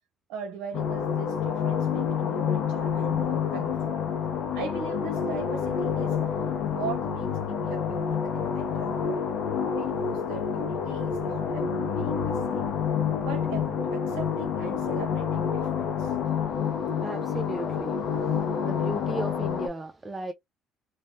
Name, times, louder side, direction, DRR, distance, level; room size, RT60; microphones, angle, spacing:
voice 1, 0.3-4.0 4.5-6.2 6.7-9.2 9.7-12.7 13.2-16.2, right 6 dB, 80° right, 0.8 m, -40 dB
sound 1, 0.7-19.7, left 7 dB, 65° left, 0.6 m, -28 dB
voice 2, 17.0-18.0 18.6-20.3, right 2 dB, 20° right, 0.4 m, -35 dB
3.1 x 2.0 x 2.6 m
supercardioid pair, 90°, 0 cm